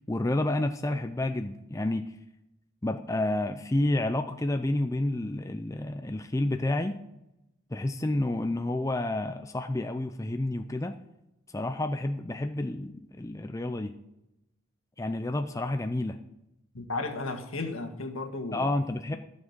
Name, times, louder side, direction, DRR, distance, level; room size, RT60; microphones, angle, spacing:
voice 1, 0.0-2.1 2.8-7.0 7.7-11.0 11.5-13.9 15.0-16.2 18.5-19.2, left 1 dB, 15° left, 7 dB, 0.4 m, -30 dB
voice 2, 16.7-18.7, left 3 dB, 75° left, 4 dB, 1.8 m, -34 dB
14.0 x 6.4 x 7.4 m, 0.89 s
head